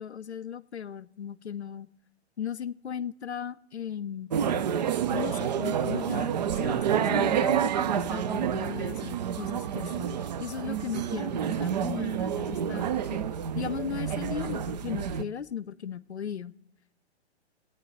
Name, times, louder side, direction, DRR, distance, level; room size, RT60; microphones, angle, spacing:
voice 1, 0.0-1.9 2.4-4.3 5.1-6.3 6.6-13.3 13.5-16.5, left 8 dB, 75° left, 17 dB, 0.6 m, -37 dB
sound 1, 4.3-15.2, right 8 dB, 40° right, 0.5 m, -29 dB
22.0 x 9.1 x 3.3 m, 0.70 s
figure-of-eight pair, 120°, 34 cm